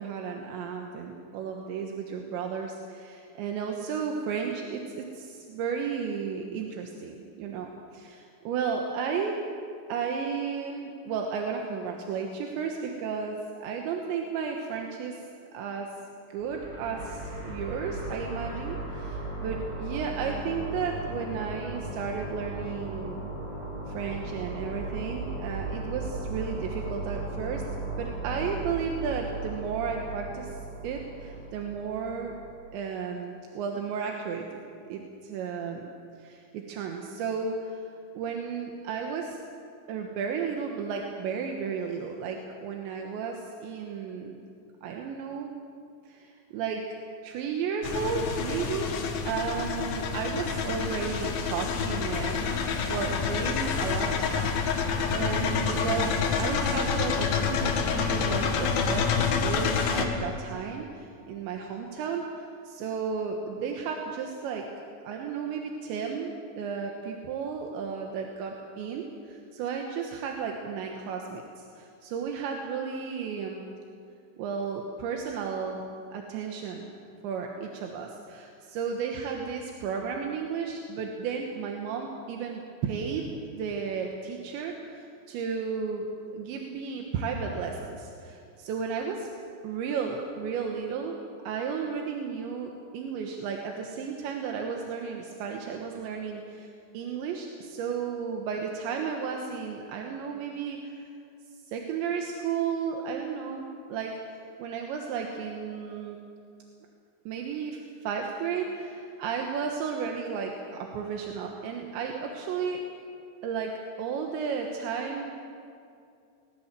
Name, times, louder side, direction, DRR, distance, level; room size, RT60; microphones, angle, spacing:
voice 1, 0.0-9.4 9.9-15.2 15.5-15.9 16.3-23.3 23.9-27.6 28.0-30.6 30.8-32.3 32.7-34.4 34.9-35.9 36.2-37.8 38.2-39.4 39.9-44.4 44.8-45.5 46.1-47.0 47.2-48.9 49.2-64.7 65.0-73.7 74.4-76.9 77.2-89.3 89.6-91.2 91.5-101.1 101.7-106.2 107.3-112.8 113.4-113.7 114.0-115.3, right 6 dB, 80° right, 2 dB, 3.6 m, -33 dB
sound 1, 16.4-32.6, right 2 dB, 30° right, 8.7 m, -36 dB
sound 2, 47.8-60.0, left 6 dB, 60° left, 3.2 m, -28 dB
22.0 x 19.0 x 7.5 m, 2.5 s
omnidirectional pair, 5.1 m